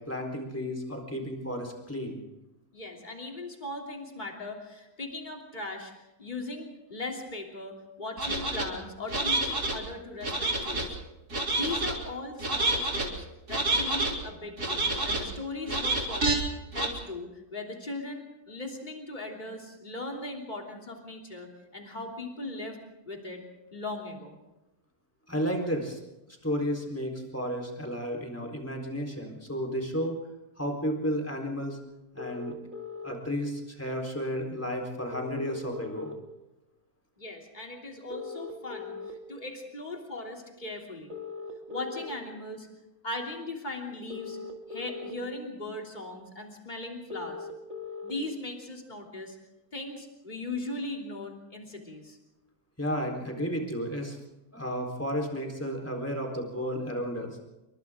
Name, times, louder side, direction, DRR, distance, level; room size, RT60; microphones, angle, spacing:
voice 1, 0.0-2.2 25.3-26.0 26.4-30.2 30.6-31.8 32.1-32.5 33.0-36.1 52.8-54.2 54.5-57.4, equal, 10° left, 1 dB, 4.2 m, -32 dB
voice 2, 2.7-11.0 11.5-16.4 16.7-22.8 23.0-23.4 23.7-24.4 37.2-41.2 41.7-42.7 43.0-44.4 44.7-47.5 48.0-49.4 49.7-52.2, left 2 dB, 30° left, 1 dB, 3.4 m, -39 dB
sound 1, 8.2-8.6 9.1-9.8 10.2-10.9 11.3-11.9 12.4-13.1 13.5-14.1 14.6-15.2 15.7-16.4 16.7-16.9, right 2 dB, 90° right, 3.9 m, -28 dB
sound 2, 32.2-33.1 35.1-36.1 38.1-39.1 41.1-42.1 44.1-45.1 47.1-48.1, left 5 dB, 60° right, 3.1 m, -39 dB
29.0 x 23.5 x 3.8 m, 0.97 s
omnidirectional pair, 1.6 m